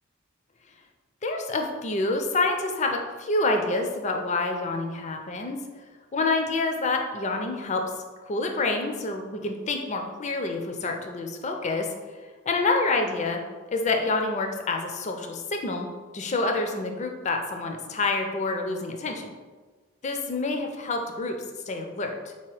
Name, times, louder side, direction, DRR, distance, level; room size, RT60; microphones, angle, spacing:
voice 1, 1.2-5.6 6.1-7.8 8.2-11.9 12.5-13.4 13.7-15.9 16.1-19.3 20.0-21.4 21.7-22.3, left 3 dB, 35° left, 3 dB, 0.4 m, -27 dB
3.7 x 2.9 x 4.7 m, 1.4 s
head